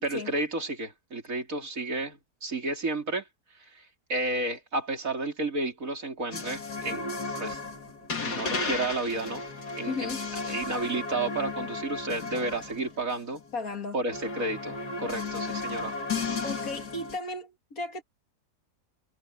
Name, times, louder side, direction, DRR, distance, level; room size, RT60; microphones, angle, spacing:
voice 1, 0.0-3.2 4.1-7.0 7.4-7.6 8.3-9.4 9.8-9.9 10.5-13.4 13.9-15.9, right 2 dB, 55° right, 4.2 m, -31 dB
sound 1, 6.3-13.6 14.1-17.2, left 3 dB, 85° left, 3.0 m, -34 dB
voice 2, 9.9-10.3 13.5-14.0 16.4-18.0, left 3 dB, 65° left, 2.8 m, -35 dB
omnidirectional pair, 1.7 m